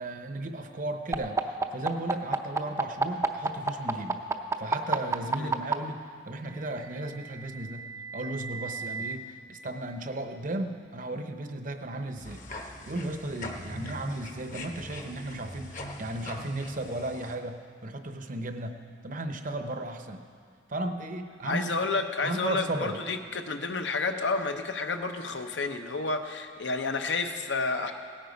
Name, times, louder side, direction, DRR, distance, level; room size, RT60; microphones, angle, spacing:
voice 1, 0.0-4.2 4.6-18.8 19.0-20.2 20.7-21.8 22.2-23.0, right 1 dB, 45° right, 7 dB, 0.8 m, -35 dB
sound 1, 1.1-5.7 6.9-9.1, right 3 dB, 15° right, 0.5 m, -29 dB
sound 2, 12.2-17.3, left 1 dB, 45° left, 1.0 m, -41 dB
voice 2, 21.4-27.9, left 3 dB, 75° left, 6 dB, 0.8 m, -30 dB
17.0 x 8.9 x 5.3 m, 2.1 s
head